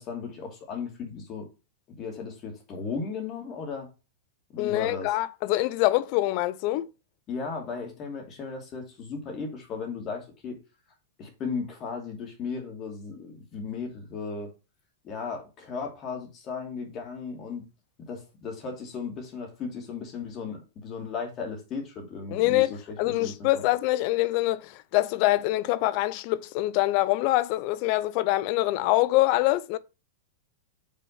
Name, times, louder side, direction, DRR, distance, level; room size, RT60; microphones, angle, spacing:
voice 1, 0.0-1.5 2.0-3.9 4.5-5.2 7.3-10.6 11.2-14.5 15.0-17.6 18.0-23.6, left 5 dB, 35° left, 2.8 m, -36 dB
voice 2, 4.6-6.9 22.3-29.8, left 17 dB, 50° left, 0.5 m, -25 dB
5.6 x 4.2 x 5.6 m
hypercardioid pair, 115°, 0 cm